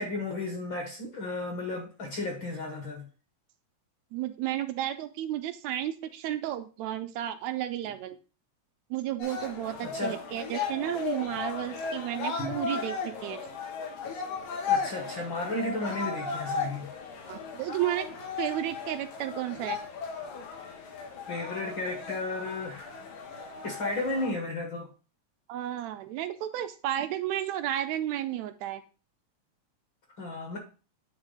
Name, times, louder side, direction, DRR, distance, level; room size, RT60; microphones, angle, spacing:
voice 1, 0.0-3.0 9.8-10.2 12.4-12.6 14.7-16.9 21.3-22.9 23.6-24.9 30.2-30.6, left 2 dB, 55° left, 1.5 m, -33 dB
voice 2, 4.1-8.2 8.9-12.9 13.2-13.4 17.3-18.1 18.4-19.8 25.5-28.8, right 12 dB, 80° right, 1.8 m, -32 dB
sound 1, 9.2-24.3, left 5 dB, 85° left, 2.8 m, -36 dB
8.8 x 3.3 x 5.0 m
omnidirectional pair, 3.3 m